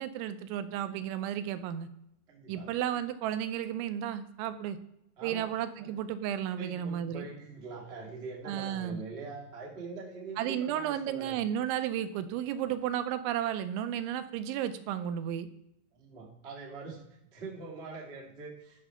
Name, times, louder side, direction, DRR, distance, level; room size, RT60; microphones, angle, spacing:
voice 1, 0.0-1.9 2.5-4.8 5.2-7.3 8.5-9.0 10.4-15.5, right 10 dB, 85° right, 11 dB, 3.0 m, -33 dB
voice 2, 2.3-2.7 5.2-5.5 5.7-6.0 6.6-11.4 15.9-17.0 17.3-18.8, right 4 dB, 65° right, -2 dB, 0.6 m, -43 dB
11.0 x 4.6 x 5.5 m, 0.80 s
omnidirectional pair, 5.4 m